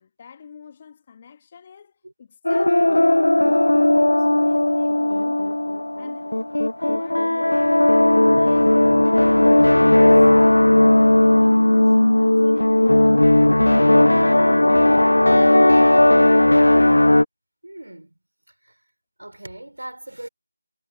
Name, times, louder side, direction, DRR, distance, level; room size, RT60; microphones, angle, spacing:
voice 1, 0.0-1.9 2.2-5.6 6.0-6.3 6.8-7.9 8.3-13.3 13.6-16.1, left 7 dB, 25° left, 1.9 m, -44 dB
sound 1, 2.5-17.2, left 1 dB, 80° left, 0.7 m, -16 dB
voice 2, 17.6-18.2 18.5-18.8 19.2-20.3, right 1 dB, 80° right, 5.7 m, -39 dB
figure-of-eight pair, 165°, 0 cm